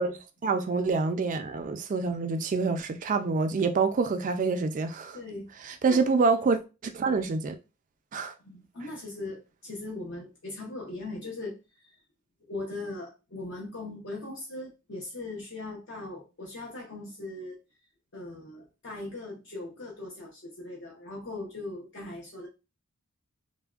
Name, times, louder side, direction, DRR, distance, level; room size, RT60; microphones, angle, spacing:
voice 1, 0.0-5.2 5.6-7.6 8.1-8.3, right 4 dB, 35° right, 0.3 m, -27 dB
voice 2, 5.1-5.5 5.9-6.0 8.4-12.0 12.4-17.6 18.1-22.5, left 2 dB, 55° left, 0.7 m, -39 dB
3.3 x 2.1 x 2.3 m
head